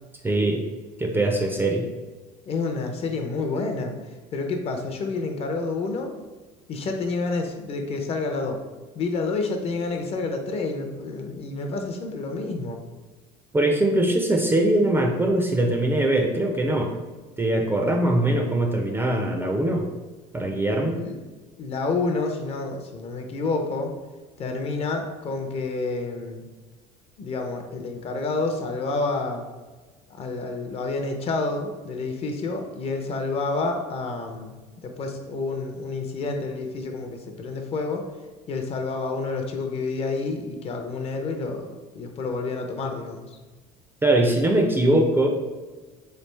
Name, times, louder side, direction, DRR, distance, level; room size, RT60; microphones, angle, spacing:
voice 1, 0.2-0.6 1.0-1.9 13.5-16.9 17.4-19.9 20.3-21.0 44.0-45.3, right 1 dB, 15° right, 2 dB, 0.4 m, -22 dB
voice 2, 2.5-4.0 4.3-6.1 6.7-8.6 8.9-12.8 21.0-21.2 21.6-23.9 24.4-26.4 27.2-29.4 30.1-34.6 34.8-38.0 38.5-41.7 41.9-43.3, left 3 dB, 40° left, 4 dB, 0.5 m, -29 dB
3.3 x 2.4 x 3.1 m, 1.3 s
cardioid pair, 115°, 16 cm